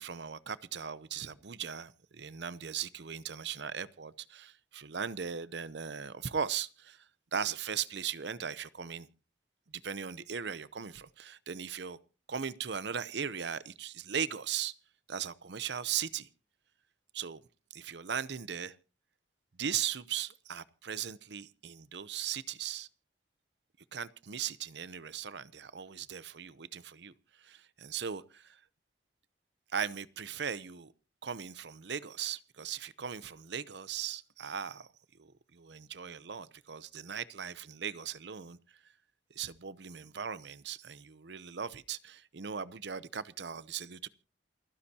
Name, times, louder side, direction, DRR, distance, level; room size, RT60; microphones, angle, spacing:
voice 1, 0.0-7.0 7.3-9.1 9.7-12.0 12.3-14.7 15.1-16.3 17.1-17.4 17.7-18.8 19.6-22.9 23.9-27.1 27.4-28.6 29.7-30.9 31.2-34.9 35.2-38.6 39.3-44.1, right 7 dB, 65° right, 0.7 m, -38 dB
28.5 x 9.9 x 2.9 m
head